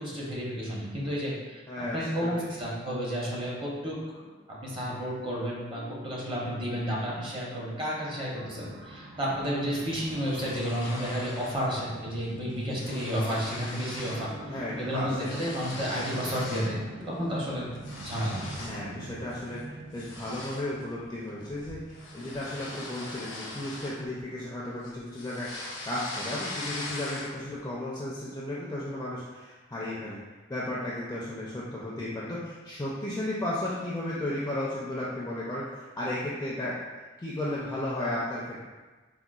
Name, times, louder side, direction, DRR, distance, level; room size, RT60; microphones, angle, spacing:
voice 1, 0.0-1.6 1.9-4.0 4.6-14.3 14.8-17.7 18.0-18.4, equal, 30° right, -5 dB, 0.7 m, -31 dB
voice 2, 1.7-2.3 14.5-15.3 18.5-30.2 30.5-36.8 37.2-38.6, left 1 dB, 15° left, -6 dB, 0.4 m, -34 dB
sound 1, 5.5-20.6, left 3 dB, 45° right, 1.4 m, -53 dB
sound 2, 8.4-24.1, right 2 dB, 75° right, 0.4 m, -46 dB
sound 3, 10.0-11.7 12.0-12.3 12.5-14.3 14.6-16.8 17.2-18.9 19.3-19.5 20.0-24.5 24.8-27.5, left 2 dB, 80° left, 0.6 m, -41 dB
3.8 x 2.2 x 2.3 m, 1.3 s
head